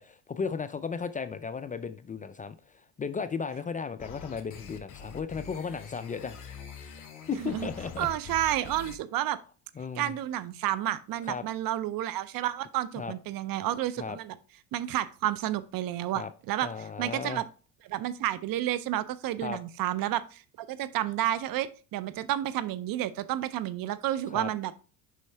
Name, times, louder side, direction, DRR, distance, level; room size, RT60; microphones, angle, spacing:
voice 1, 0.0-6.6 7.3-8.1 9.8-10.2 11.2-11.5 13.0-13.1 14.0-14.2 16.1-16.3 16.6-17.4 19.4-19.6 24.3-24.5, left 5 dB, 20° left, 0.4 m, -35 dB
sound 1, 4.0-9.0, left 6 dB, 50° left, 2.1 m, -44 dB
voice 2, 7.3-7.7 8.0-9.4 10.0-14.4 14.7-16.7 17.0-17.5 17.9-24.7, right 13 dB, 55° right, 0.7 m, -31 dB
6.3 x 5.4 x 3.3 m
supercardioid pair, 90°, 40 cm